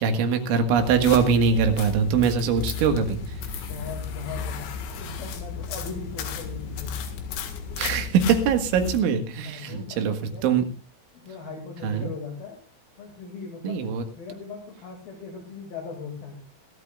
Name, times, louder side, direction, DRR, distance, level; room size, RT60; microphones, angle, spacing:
voice 1, 0.0-3.2 7.8-10.2 10.4-10.6 11.8-12.1 13.6-14.0, right 6 dB, 75° right, 7 dB, 4.0 m, -22 dB
sound 1, 0.8-9.0, left 5 dB, 70° left, 4.0 m, -33 dB
voice 2, 3.7-4.7 5.0-7.0 9.5-10.7 11.1-12.6 13.0-13.8 14.2-16.4, left 4 dB, 55° left, 2 dB, 3.8 m, -39 dB
26.0 x 13.0 x 2.4 m, 0.32 s
omnidirectional pair, 5.6 m